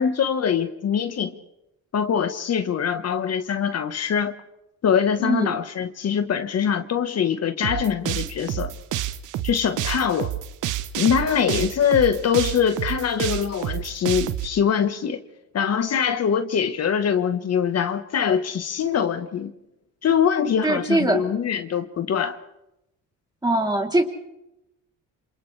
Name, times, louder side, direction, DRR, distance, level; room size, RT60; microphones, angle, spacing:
voice 1, 0.0-1.3 1.9-4.4 4.8-8.7 9.4-10.3 10.9-15.2 15.5-19.5 20.0-22.4, left 7 dB, 55° left, 1.4 m, -23 dB
voice 2, 5.2-5.5 20.6-21.2 23.4-24.0, right 2 dB, 15° right, 3.4 m, -21 dB
sound 1, 7.6-14.5, right 13 dB, 85° right, 1.0 m, -28 dB
27.5 x 27.5 x 3.4 m
cardioid pair, 90°, 30 cm